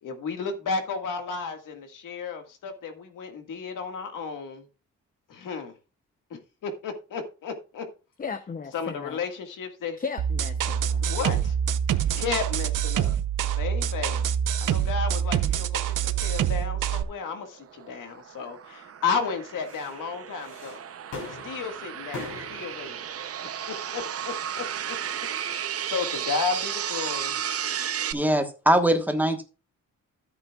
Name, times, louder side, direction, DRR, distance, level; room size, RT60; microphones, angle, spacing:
voice 1, 0.0-4.6 5.3-5.7 6.3-7.9 8.7-10.0 11.0-11.6 12.1-13.2 13.6-14.3 14.6-20.8 21.4-23.0 23.9-25.0 25.5-27.4, left 5 dB, 90° left, 6 dB, 1.8 m, -33 dB
voice 2, 8.2-9.2 10.0-11.1, left 5 dB, 30° left, 10 dB, 0.7 m, -36 dB
sound 1, 10.2-17.0, right 9 dB, 80° right, 0.8 m, -26 dB
sound 2, 11.5-11.6 14.2-14.3 17.0-17.1 19.4-26.5 27.1-27.4, left 3 dB, 70° left, 5.3 m, -45 dB
sound 3, 17.3-28.1, right 9 dB, 50° right, 0.7 m, -34 dB
voice 3, 28.1-29.4, right 1 dB, 5° right, 5 dB, 1.2 m, -22 dB
14.0 x 8.1 x 2.4 m, 0.33 s
wide cardioid pair, 150°, 31 cm